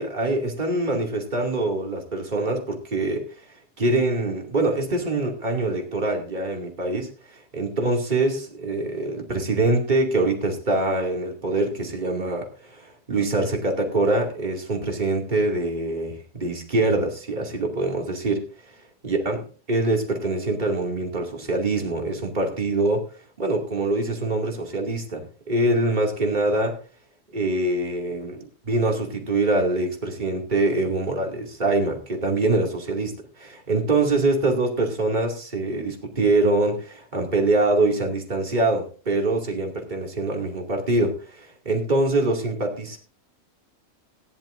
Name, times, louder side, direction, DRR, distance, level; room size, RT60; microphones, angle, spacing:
voice 1, 0.0-3.2 3.8-18.4 19.0-23.0 23.4-26.8 27.3-43.0, right 2 dB, 30° right, 1 dB, 2.6 m, -24 dB
19.0 x 10.5 x 2.6 m, 0.38 s
omnidirectional pair, 1.6 m